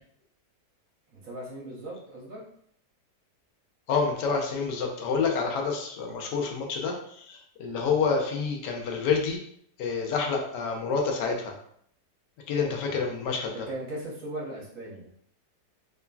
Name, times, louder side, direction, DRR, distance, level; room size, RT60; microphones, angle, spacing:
voice 1, 1.1-2.4 12.6-13.0 13.5-15.1, right 1 dB, 60° right, -4 dB, 1.0 m, -38 dB
voice 2, 3.9-9.4 9.8-11.5 12.5-13.7, left 5 dB, 85° left, 2 dB, 1.2 m, -28 dB
3.1 x 2.4 x 2.2 m, 0.66 s
omnidirectional pair, 1.8 m